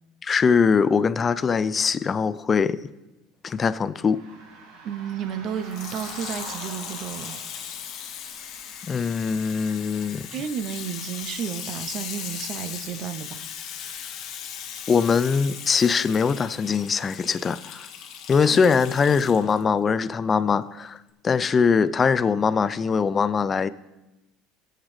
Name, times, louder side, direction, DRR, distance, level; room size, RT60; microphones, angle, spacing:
voice 1, 0.2-2.8 3.4-4.3 8.8-10.2 14.9-17.9 18.3-21.0 21.2-23.7, left 5 dB, 20° left, 0.3 m, -22 dB
sound 1, 4.0-9.2, right 3 dB, 65° right, 1.7 m, -44 dB
voice 2, 4.8-7.4 10.3-13.5 18.4-18.7, right 8 dB, 40° right, 0.6 m, -32 dB
Water tap faucet / Sink (filling or washing), 5.6-19.6 20.3-20.4, left 8 dB, 45° left, 1.1 m, -38 dB
18.5 x 8.0 x 3.2 m
cardioid pair, 155°, 0 cm